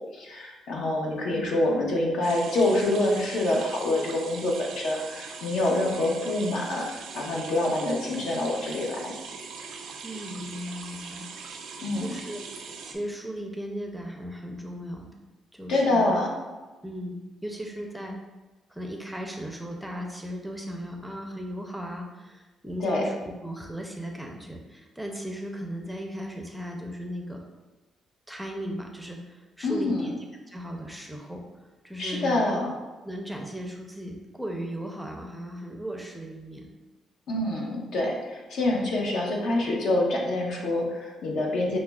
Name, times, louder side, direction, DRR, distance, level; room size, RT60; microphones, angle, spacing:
voice 1, 0.1-6.9 7.1-9.1 11.8-12.1 15.7-16.3 22.8-23.0 29.6-30.1 32.0-32.7 37.3-41.8, left 2 dB, 75° left, -1 dB, 0.7 m, -26 dB
sound 1, 2.2-13.0, right 5 dB, 85° right, 0.4 m, -41 dB
voice 2, 10.0-11.3 12.0-12.4 12.8-15.1 15.5-16.1 16.8-18.2 18.7-27.4 28.3-30.2 30.5-31.4 31.8-32.3 33.0-36.7, equal, 5° right, 1 dB, 0.5 m, -36 dB
5.6 x 2.0 x 2.2 m, 1.2 s
cardioid pair, 90°, 0 cm